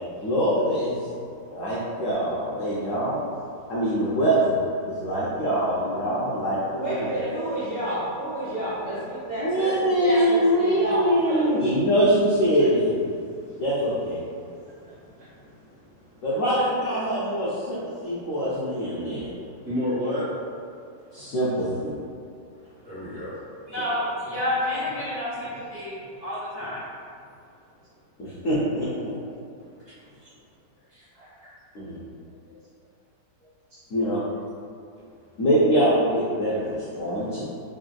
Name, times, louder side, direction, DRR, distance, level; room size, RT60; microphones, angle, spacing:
voice 1, 0.2-1.0 1.5-3.2 3.7-4.6 4.8-7.1 9.4-13.2 13.6-14.2 16.2-19.3 21.1-21.9 28.2-29.1 31.7-32.0 33.9-34.2 35.4-37.4, equal, 75° left, -9 dB, 0.7 m, -23 dB
voice 2, 6.8-11.5 16.2-17.0, right 1 dB, 70° right, -11 dB, 0.6 m, -30 dB
voice 3, 14.9-15.3 19.6-20.3 22.8-23.3 30.9-31.3 33.7-33.8, left 1 dB, 50° right, -10 dB, 1.4 m, -31 dB
voice 4, 23.7-25.9 26.2-26.8, left 1 dB, 15° left, -13 dB, 0.7 m, -29 dB
3.4 x 2.5 x 2.2 m, 2.3 s
omnidirectional pair, 1.9 m